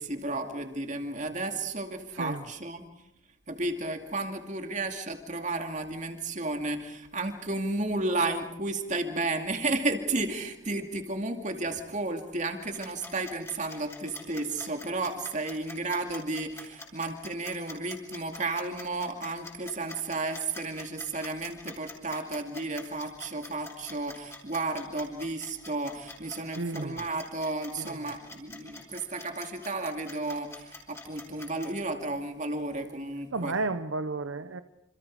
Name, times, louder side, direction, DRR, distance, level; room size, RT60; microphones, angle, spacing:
voice 1, 0.0-2.8 3.5-33.5, right 2 dB, 40° right, 2.5 m, -33 dB
voice 2, 2.1-2.5 26.4-27.1 27.8-28.0 33.3-34.6, right 3 dB, 75° right, 0.8 m, -33 dB
sound 1, 12.6-31.7, left 2 dB, 15° left, 5.2 m, -45 dB
28.0 x 27.0 x 4.9 m
head